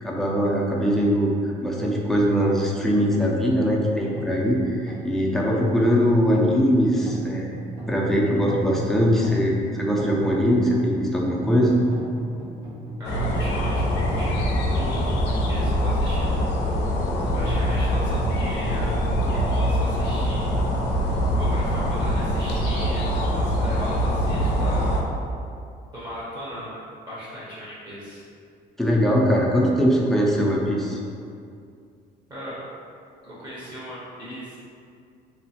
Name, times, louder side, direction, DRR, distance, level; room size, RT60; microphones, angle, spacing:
voice 1, 0.0-1.3 1.6-7.5 7.9-11.7 28.8-31.0, equal, ahead, -3 dB, 0.4 m, -21 dB
sound 1, 3.2-20.8, right 1 dB, 85° right, 1.5 m, -36 dB
sound 2, 13.0-25.0, equal, 85° left, 0.4 m, -23 dB
voice 2, 13.0-16.6 17.3-20.9 21.4-25.0 25.9-28.2 32.3-32.6 33.2-34.6, equal, 25° right, -8 dB, 0.7 m, -37 dB
3.0 x 2.0 x 2.7 m, 2.4 s
cardioid pair, 110°, 17 cm